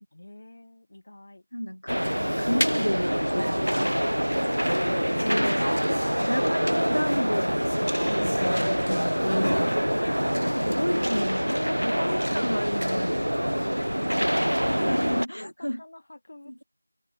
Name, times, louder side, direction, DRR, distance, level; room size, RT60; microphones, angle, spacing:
voice 1, 0.1-1.5 13.5-14.8 15.4-16.6, left 2 dB, 15° left, 1.0 m, -48 dB
voice 2, 1.5-2.0 2.4-4.1 5.2-5.6 6.2-7.6 8.2-9.6 10.4-13.5 14.7-15.8, equal, 60° left, 1.3 m, -31 dB
sound 1, 1.9-15.3, equal, 65° right, 0.3 m, -25 dB
Wind instrument woodwind instrument, 5.7-9.3 9.6-13.9, equal, 85° right, 3.7 m, -50 dB
figure-of-eight pair, 180°, 0 cm